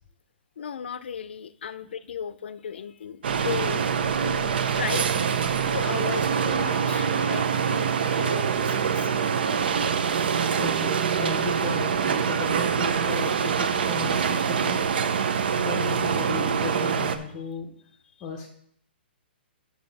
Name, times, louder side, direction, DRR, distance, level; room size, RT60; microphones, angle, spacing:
voice 1, 0.6-5.1 5.6-9.1, left 8 dB, 70° left, 14 dB, 0.5 m, -35 dB
sound 1, 3.2-17.2, right 7 dB, 60° right, 0.7 m, -25 dB
voice 2, 10.5-14.9 15.6-17.7 18.2-18.5, left 5 dB, 20° left, 4 dB, 0.6 m, -36 dB
8.8 x 6.4 x 4.0 m, 0.68 s
hypercardioid pair, 170°, 6 cm